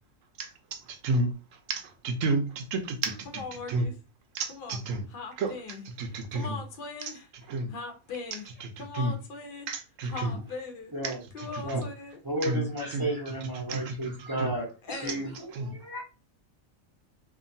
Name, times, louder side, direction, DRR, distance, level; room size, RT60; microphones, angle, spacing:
voice 1, 0.4-1.3 1.7-3.4 3.7-3.8 4.3-5.0 5.4-5.5 6.0-6.6 7.5-7.7 8.9-9.1 9.7-10.4 11.0-11.8 12.4-12.6 12.9-13.0 13.5-14.5 15.5-15.8, right 2 dB, 75° right, 0.9 m, -31 dB
voice 2, 3.3-3.9 4.5-4.8 5.1-7.3 7.7-9.7 10.0-10.9 11.3-12.2 14.8-15.2, left 4 dB, 60° left, 0.6 m, -40 dB
voice 3, 12.2-16.0, right 1 dB, 25° right, 0.5 m, -33 dB
2.8 x 2.3 x 2.6 m
omnidirectional pair, 1.4 m